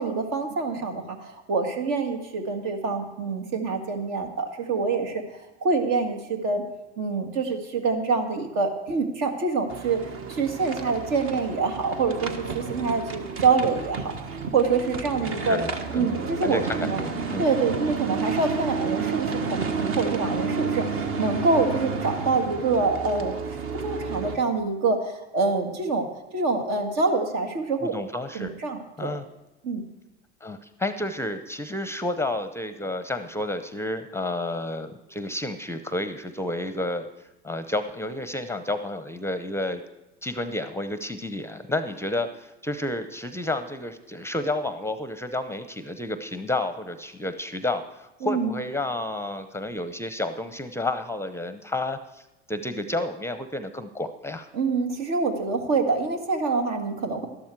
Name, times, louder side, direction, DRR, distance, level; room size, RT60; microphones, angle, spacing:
voice 1, 0.0-5.2 5.6-6.6 7.0-10.0 10.3-14.1 14.5-15.6 15.9-17.0 17.4-23.4 23.7-26.1 26.3-28.0 28.3-29.2 29.6-29.8 48.2-48.6 54.5-57.3, right 4 dB, 65° right, 5 dB, 1.9 m, -26 dB
sound 1, 9.7-24.4, right 5 dB, 45° right, 1.3 m, -31 dB
voice 2, 15.5-16.2 16.4-17.4 27.8-28.5 29.0-29.3 30.4-37.1 37.4-39.8 40.2-52.2 52.5-54.5, left 1 dB, 10° left, 10 dB, 0.7 m, -30 dB
12.5 x 11.5 x 4.6 m, 0.98 s
hypercardioid pair, 85°, 31 cm